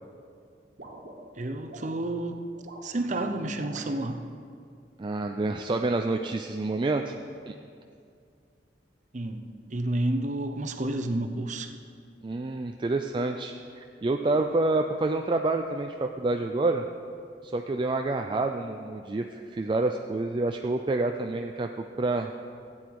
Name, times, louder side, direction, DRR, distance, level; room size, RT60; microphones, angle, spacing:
sound 1, 0.8-1.9 2.5-2.9 3.6-3.9, right 2 dB, 65° right, 1.7 m, -45 dB
voice 1, 1.3-2.4 2.8-4.2 9.1-11.7, right 1 dB, 45° right, 7 dB, 0.8 m, -30 dB
voice 2, 5.0-7.1 7.5-7.6 12.2-16.9 17.4-22.3, right 2 dB, 30° right, 4 dB, 0.4 m, -28 dB
15.5 x 8.8 x 4.7 m, 2.3 s
head